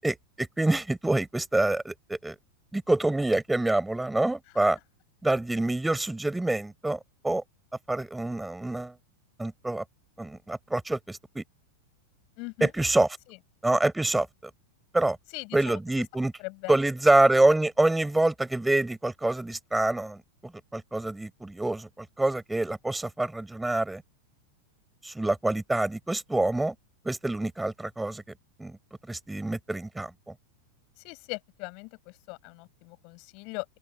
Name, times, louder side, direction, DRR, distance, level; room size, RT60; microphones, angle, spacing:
voice 1, 0.0-2.3 2.7-4.8 5.2-7.4 7.9-8.9 9.4-9.8 10.2-11.4 12.6-13.1 13.6-14.3 14.9-15.2 15.5-16.3 16.7-24.0 25.0-26.7 27.0-28.2 28.6-28.8 29.1-30.3, right 2 dB, 5° right, 6.7 m, -26 dB
voice 2, 12.4-12.7 15.3-15.8 16.4-16.8 31.0-33.7, left 31 dB, 45° left, 7.1 m, -39 dB
open air
figure-of-eight pair, 90°, 0 cm